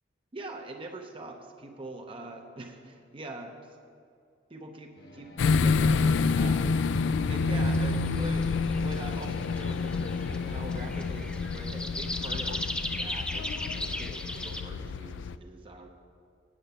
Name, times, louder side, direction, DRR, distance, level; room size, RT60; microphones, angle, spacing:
voice 1, 0.3-3.8 4.5-7.0 7.3-13.5 13.7-15.9, right 2 dB, 30° right, 3 dB, 0.6 m, -43 dB
sound 1, 5.0-11.7, right 1 dB, 60° left, 1.0 m, -49 dB
sound 2, 5.4-15.3, left 4 dB, 80° left, 0.4 m, -28 dB
sound 3, 7.5-14.6, left 1 dB, 5° left, 0.4 m, -38 dB
8.8 x 7.7 x 6.7 m, 2.4 s
head